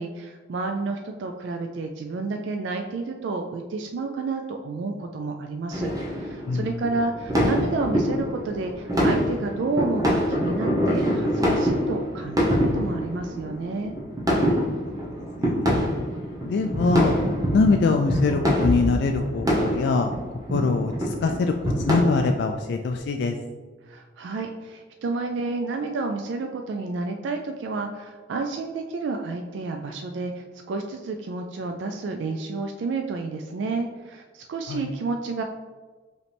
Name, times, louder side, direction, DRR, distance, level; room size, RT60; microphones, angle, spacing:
voice 1, 0.0-13.9 23.9-35.4, right 3 dB, 70° right, 4 dB, 0.3 m, -30 dB
sound 1, 5.7-22.0, equal, 20° right, 0.9 m, -25 dB
voice 2, 16.5-17.1 17.5-20.1 20.5-23.4 34.7-34.8, left 4 dB, 65° left, 4 dB, 0.3 m, -23 dB
4.9 x 3.2 x 3.3 m, 1.4 s
head